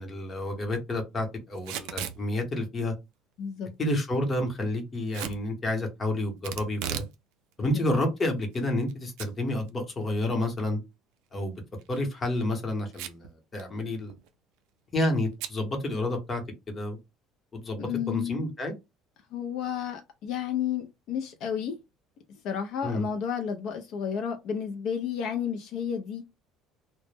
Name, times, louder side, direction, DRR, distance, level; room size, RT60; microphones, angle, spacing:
voice 1, 0.0-2.9 3.8-7.0 7.6-10.8 11.3-11.5 11.9-14.1 14.9-16.4 16.7-17.0 17.5-18.7 22.8-23.0, left 1 dB, 25° left, 0.8 m, -29 dB
Packing tape duct tape / Tearing, 1.6-2.2 5.1-5.4 6.4-7.1 7.5-7.6 8.3-8.9 9.2-9.3 9.7-9.8 11.7-12.0 12.9-13.3 13.6-13.7 13.9-14.3 15.4-15.6, right 9 dB, 80° right, 0.4 m, -36 dB
voice 2, 3.4-3.7 7.7-7.8 17.8-18.5 19.3-21.8 22.3-26.2, left 8 dB, 60° left, 0.4 m, -32 dB
2.0 x 2.0 x 3.2 m
cardioid pair, 130°, 0 cm